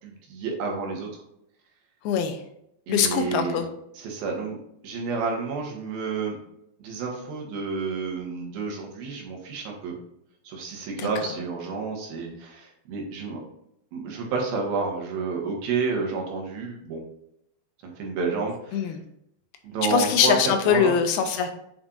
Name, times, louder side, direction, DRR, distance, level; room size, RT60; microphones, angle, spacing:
voice 1, 0.0-1.1 2.9-3.6 3.9-6.4 6.8-10.0 10.4-13.4 13.9-17.0 17.8-18.9 19.6-20.4 20.6-20.9, right 4 dB, 75° right, 0 dB, 3.2 m, -30 dB
voice 2, 2.0-2.4 2.9-3.7 11.0-11.1 18.7-19.0 19.9-21.7, left 8 dB, 90° left, 7 dB, 2.8 m, -23 dB
7.3 x 5.3 x 2.6 m, 0.76 s
omnidirectional pair, 4.4 m